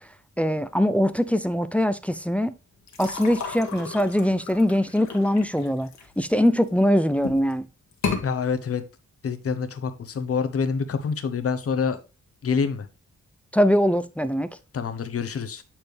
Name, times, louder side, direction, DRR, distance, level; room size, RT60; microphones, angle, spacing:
voice 1, 0.4-2.5 3.0-5.9 6.2-7.7 13.5-14.6, equal, 5° left, 0.3 m, -22 dB
sound 1, 2.9-6.7 7.2-7.5 7.9-8.2, left 5 dB, 65° left, 1.5 m, -33 dB
voice 2, 8.2-8.8 9.2-12.0 12.4-12.9 14.7-15.6, left 6 dB, 50° left, 0.9 m, -26 dB
8.5 x 4.4 x 3.2 m
wide cardioid pair, 130°, 30 cm